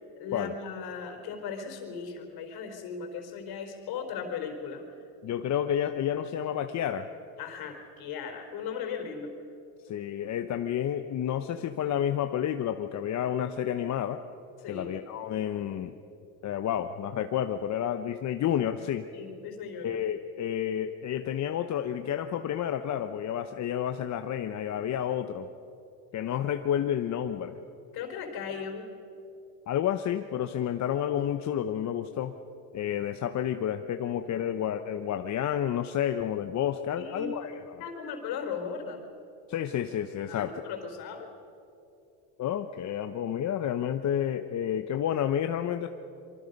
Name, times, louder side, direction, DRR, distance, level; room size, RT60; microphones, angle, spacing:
voice 1, 0.2-4.8 7.4-9.3 14.6-14.9 19.1-20.0 27.9-28.8 36.9-37.3 37.8-39.0 40.3-41.3, left 6 dB, 65° left, 5 dB, 4.3 m, -37 dB
voice 2, 5.2-7.1 9.8-14.2 14.7-16.0 16.4-19.1 19.8-25.5 26.1-27.6 29.7-32.3 32.7-37.8 39.5-40.6 42.4-45.9, left 10 dB, 45° left, 7 dB, 0.9 m, -30 dB
26.5 x 23.5 x 5.4 m, 2.8 s
supercardioid pair, 105°, 41 cm